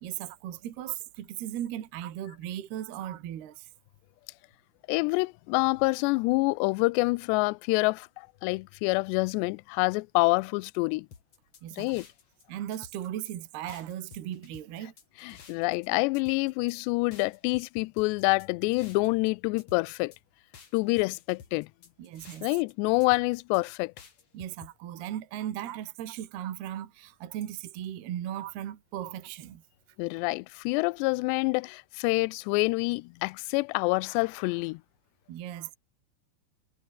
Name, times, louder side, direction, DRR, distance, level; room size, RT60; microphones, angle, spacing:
voice 1, 0.0-3.7 11.6-11.9 12.5-14.9 22.0-22.5 24.3-29.6 35.3-35.8, right 11 dB, 60° right, 3.8 m, -37 dB
voice 2, 4.9-11.1 11.8-12.1 15.2-20.1 20.7-21.7 22.4-23.9 30.0-34.8, left 26 dB, 85° left, 2.5 m, -27 dB
sound 1, 11.1-12.4 12.7-13.3 13.7-15.9 16.1-16.8 17.1-19.3 19.6-20.2 20.5-22.7 23.0-23.6 24.0-24.7, left 6 dB, 40° left, 3.2 m, -52 dB
omnidirectional pair, 5.4 m